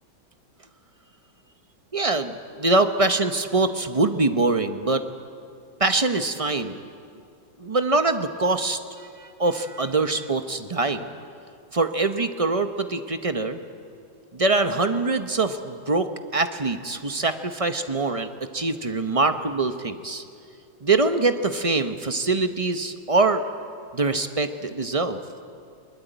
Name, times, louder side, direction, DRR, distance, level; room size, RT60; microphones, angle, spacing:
voice 1, 1.9-5.0 5.8-6.8 7.6-11.1 11.7-13.6 14.3-20.2 20.8-23.4 23.9-25.2, right 3 dB, 35° right, 8 dB, 0.5 m, -24 dB
21.5 x 21.0 x 9.2 m, 2.4 s
omnidirectional pair, 2.0 m